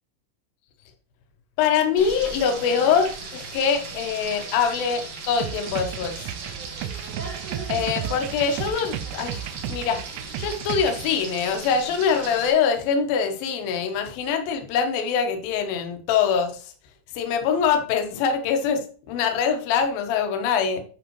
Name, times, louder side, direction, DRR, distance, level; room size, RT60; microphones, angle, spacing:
voice 1, 1.6-6.3 7.7-10.0 10.4-16.7 17.1-20.8, left 6 dB, 75° left, 5 dB, 2.2 m, -24 dB
Frying (food), 2.0-12.5, right 4 dB, 65° right, 1.8 m, -37 dB
sound 1, 5.4-11.1, right 11 dB, 85° right, 3.1 m, -34 dB
10.5 x 5.4 x 3.1 m, 0.41 s
omnidirectional pair, 5.9 m